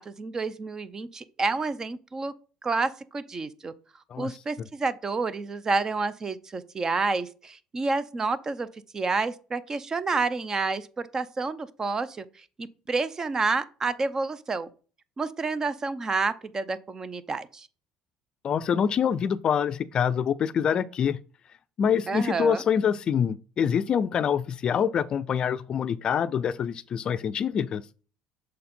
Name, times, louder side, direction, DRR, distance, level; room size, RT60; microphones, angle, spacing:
voice 1, 0.0-2.3 2.6-3.7 4.2-8.7 8.9-12.2 12.6-14.7 15.2-17.7 22.1-22.6, right 4 dB, 30° right, 0.6 m, -29 dB
voice 2, 18.4-21.2 21.8-27.8, left 7 dB, 45° left, 0.4 m, -25 dB
6.4 x 4.1 x 4.3 m
supercardioid pair, 100°, 2 cm